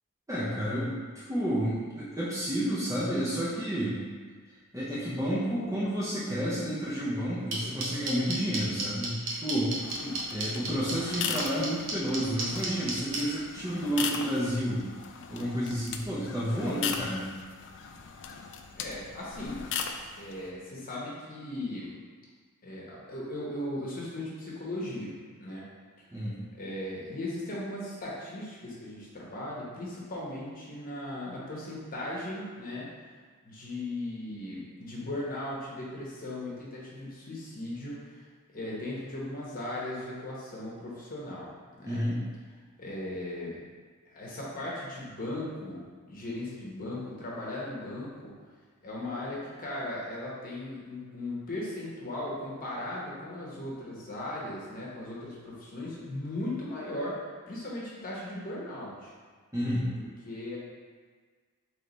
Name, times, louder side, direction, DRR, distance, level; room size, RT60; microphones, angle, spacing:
voice 1, 0.3-4.0 4.7-9.8 10.3-14.9 15.3-17.3 26.1-26.4 41.9-42.2 59.5-59.9, equal, 15° right, -9 dB, 0.6 m, -30 dB
sound 1, 7.5-13.2, right 3 dB, 60° right, 0.8 m, -32 dB
sound 2, 9.8-20.5, left 6 dB, 55° left, 0.3 m, -38 dB
voice 2, 18.7-19.6 20.2-21.9 22.6-25.6 26.5-32.9 33.4-38.2 38.5-41.5 41.8-42.0 42.8-43.6 44.1-48.3 48.8-57.2 57.5-59.1 60.0-60.6, left 1 dB, 40° left, -5 dB, 1.0 m, -37 dB
3.2 x 3.2 x 3.9 m, 1.5 s
head